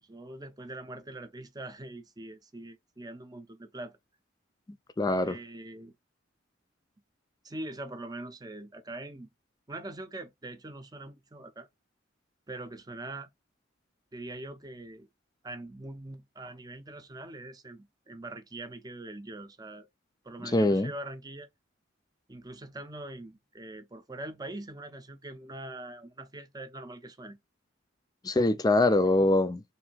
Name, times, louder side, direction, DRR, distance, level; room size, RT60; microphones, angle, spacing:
voice 1, 0.0-4.0 5.2-5.9 7.4-9.3 9.7-11.7 12.5-13.3 14.1-15.1 15.4-19.9 20.2-21.5 22.3-27.4 29.1-29.3, right 2 dB, 20° right, 0.6 m, -43 dB
voice 2, 5.0-5.4 20.4-20.9 28.2-29.6, left 2 dB, 20° left, 0.4 m, -23 dB
3.3 x 2.6 x 4.4 m
head